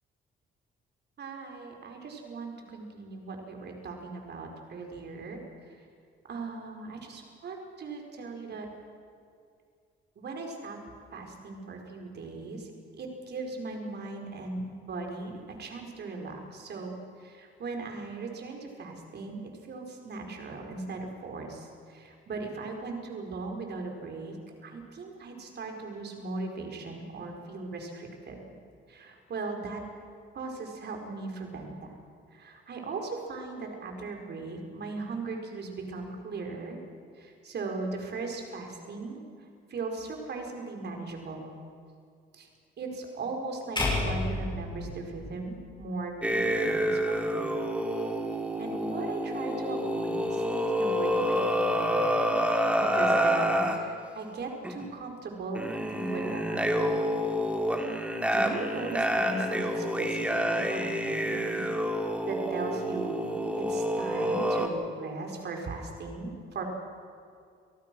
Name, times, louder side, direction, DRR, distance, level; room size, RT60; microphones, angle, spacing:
voice 1, 1.2-5.8 6.3-8.7 10.2-10.8 11.1-24.4 24.6-28.4 28.9-29.8 30.3-31.9 32.3-36.8 37.1-41.5 42.3-42.5 42.8-47.5 48.6-52.1 52.7-57.1 57.7-58.0 58.3-61.7 62.2-66.6, right 3 dB, 60° right, 2 dB, 5.0 m, -38 dB
spotlight-stereo, 43.8-46.0, left 2 dB, 25° left, 7.9 m, -31 dB
sound 1, 46.2-53.8 54.6-54.9 55.5-64.7, equal, 5° right, 2.9 m, -28 dB
29.5 x 19.0 x 6.3 m, 2.3 s
cardioid pair, 90°, 20 cm